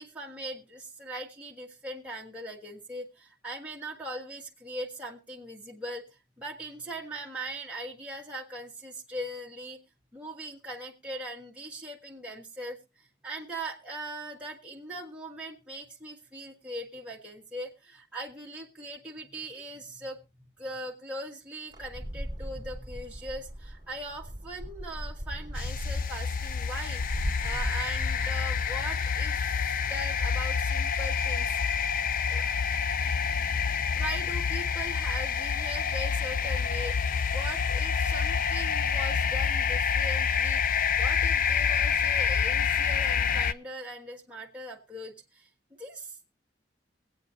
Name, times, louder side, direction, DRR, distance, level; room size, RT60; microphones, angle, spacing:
voice 1, 0.0-6.0 6.4-9.8 10.1-20.2 20.6-31.5 32.3-32.7 33.9-40.6 41.0-45.5 45.8-46.2, right 1 dB, 5° right, -2 dB, 1.5 m, -40 dB
sound 1, 21.7-30.7, equal, 25° right, 1.7 m, -39 dB
sound 2, 25.5-43.5, left 6 dB, 50° left, 0.5 m, -27 dB
23.0 x 8.4 x 2.7 m, 0.27 s
head